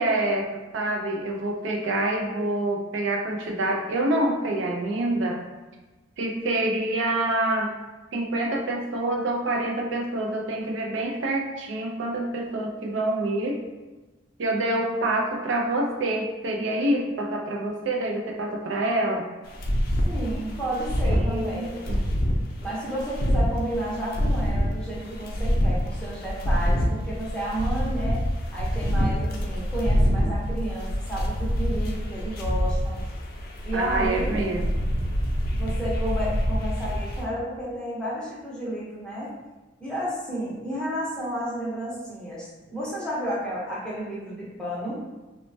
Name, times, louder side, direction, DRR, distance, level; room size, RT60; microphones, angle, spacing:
voice 1, 0.0-5.4 6.2-7.7 8.1-13.6 14.4-19.3 21.0-22.0 33.7-34.6, right 1 dB, 70° right, 1 dB, 0.4 m, -26 dB
sound 1, 19.5-37.2, equal, 50° left, 0.4 m, -26 dB
voice 2, 20.0-21.8 22.6-28.2 28.5-33.0 33.6-34.4 35.6-39.3 39.8-45.0, right 1 dB, 5° left, -7 dB, 0.7 m, -31 dB
3.1 x 2.1 x 2.6 m, 1.2 s
head